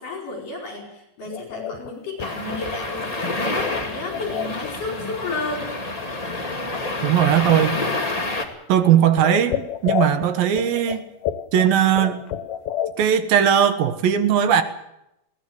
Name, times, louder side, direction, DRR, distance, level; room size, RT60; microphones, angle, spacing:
voice 1, 0.0-5.7, left 3 dB, 65° left, 2 dB, 6.3 m, -32 dB
sound 1, 1.3-4.7 5.0-5.7 6.0-6.1 6.4-7.5 7.8-8.1 8.5-8.6 8.8-13.0, left 10 dB, 90° left, 3.1 m, -31 dB
sound 2, 2.2-8.4, left 2 dB, 15° left, 1.7 m, -28 dB
voice 2, 7.0-7.8 8.7-11.1 11.5-12.2 13.0-14.6, right 9 dB, 80° right, 10 dB, 3.1 m, -18 dB
21.0 x 17.5 x 7.9 m, 0.84 s
omnidirectional pair, 4.2 m